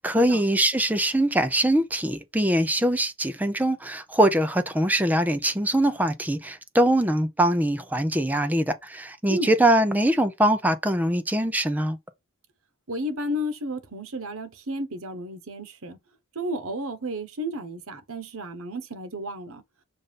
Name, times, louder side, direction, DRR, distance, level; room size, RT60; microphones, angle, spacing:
voice 1, 0.0-12.0, right 1 dB, 10° right, 0.6 m, -23 dB
voice 2, 12.9-16.0 16.3-19.6, equal, 80° right, 1.2 m, -32 dB
6.9 x 2.7 x 5.2 m
head